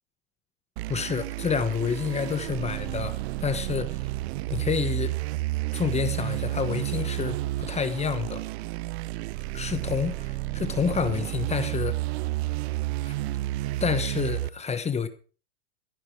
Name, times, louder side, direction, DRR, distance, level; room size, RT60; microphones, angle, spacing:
sound 1, 0.8-14.5, right 17 dB, 60° right, 0.8 m, -31 dB
voice 1, 0.9-4.1 4.5-5.2 5.7-8.4 9.5-12.0 13.0-13.1 13.8-15.1, left 6 dB, 20° left, 1.1 m, -29 dB
14.5 x 10.0 x 4.8 m
hypercardioid pair, 110°, 36 cm